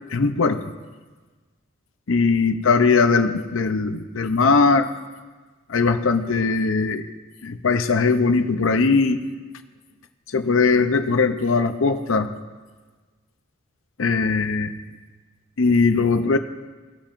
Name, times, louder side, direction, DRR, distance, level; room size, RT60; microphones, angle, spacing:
voice 1, 0.1-0.6 2.1-4.9 5.7-7.0 7.4-9.2 10.3-12.3 14.0-14.7 15.6-16.4, left 4 dB, 70° left, 9 dB, 0.7 m, -20 dB
18.5 x 7.2 x 2.6 m, 1.3 s
head